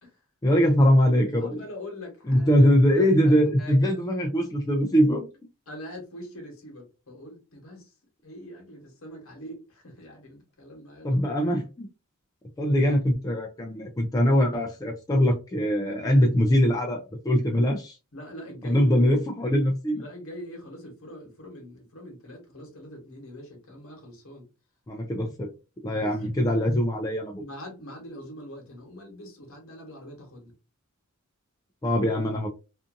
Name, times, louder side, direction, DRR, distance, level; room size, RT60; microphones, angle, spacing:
voice 1, 0.4-1.6 2.3-5.3 11.0-11.9 12.6-18.0 18.6-20.0 24.9-25.5 25.8-27.4 31.8-32.5, equal, 15° left, 0.3 m, -22 dB
voice 2, 1.3-2.7 2.9-4.0 5.7-7.9 8.2-11.2 12.7-12.8 18.1-18.9 19.9-24.5 25.9-26.1 27.4-30.5, equal, 70° left, 1.1 m, -43 dB
2.5 x 2.5 x 2.4 m
head